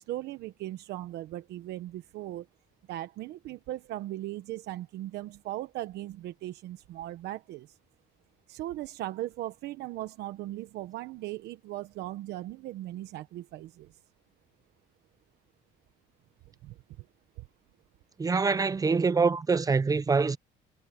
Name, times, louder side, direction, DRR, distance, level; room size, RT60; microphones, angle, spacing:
voice 1, 0.0-2.5 2.9-7.8 8.5-13.9 16.6-16.7, right 15 dB, 80° right, 1.0 m, -38 dB
voice 2, 18.2-20.4, right 4 dB, 20° right, 0.6 m, -25 dB
cardioid pair, 110°, 17 cm